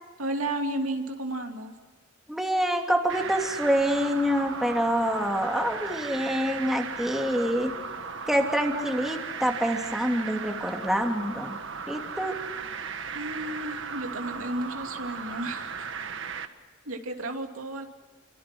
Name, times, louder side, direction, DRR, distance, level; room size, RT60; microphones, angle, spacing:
voice 1, 0.2-1.7 12.8-15.9 16.8-17.9, right 1 dB, 85° right, 3 dB, 2.9 m, -33 dB
voice 2, 2.3-7.7 8.3-11.6 11.9-12.3, equal, ahead, 2 dB, 2.9 m, -26 dB
sound 1, 3.1-16.5, right 6 dB, 65° right, 1.6 m, -36 dB
29.0 x 25.0 x 6.3 m, 1.3 s
head